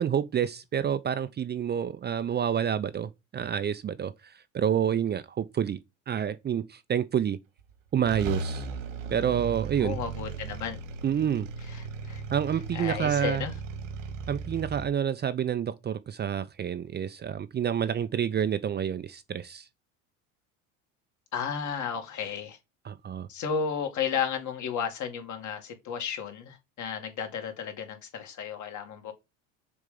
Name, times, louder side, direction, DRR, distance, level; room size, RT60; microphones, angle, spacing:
voice 1, 0.0-7.4 7.9-8.7 9.1-10.0 11.0-11.5 12.3-13.4 14.3-19.7 22.8-23.3, right 8 dB, 25° right, 0.6 m, -28 dB
sound 1, 7.6-7.7 8.0-14.8, right 4 dB, 85° right, 2.0 m, -37 dB
voice 2, 9.8-10.8 11.7-12.2 12.7-13.5 21.3-22.6 23.3-29.1, left 7 dB, 50° left, 2.4 m, -33 dB
6.7 x 3.6 x 5.2 m
hypercardioid pair, 90°, 38 cm